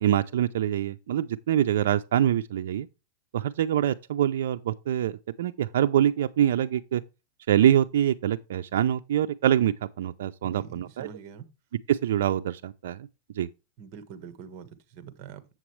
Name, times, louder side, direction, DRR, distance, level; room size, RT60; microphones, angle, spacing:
voice 1, 0.0-2.9 3.3-7.0 7.5-11.1 11.9-13.1 13.4-13.5, right 11 dB, 75° right, 0.5 m, -25 dB
voice 2, 10.4-11.5 13.8-15.5, right 7 dB, 45° right, 1.4 m, -44 dB
7.8 x 7.3 x 3.2 m
supercardioid pair, 145°, 0 cm